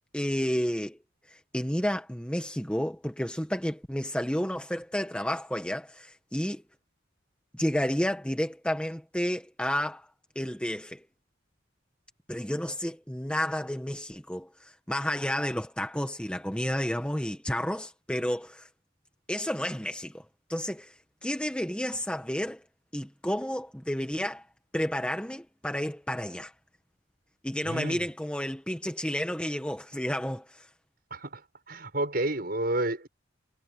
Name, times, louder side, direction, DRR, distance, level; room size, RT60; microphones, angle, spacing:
voice 1, 0.1-1.0 1.3-6.6 7.5-10.1 10.3-11.0 12.3-18.7 19.3-22.6 22.9-24.5 24.7-26.5 27.4-30.7, equal, 5° left, 1.4 m, -31 dB
voice 2, 27.6-28.1 31.1-33.1, right 1 dB, 50° right, 6.9 m, -31 dB
head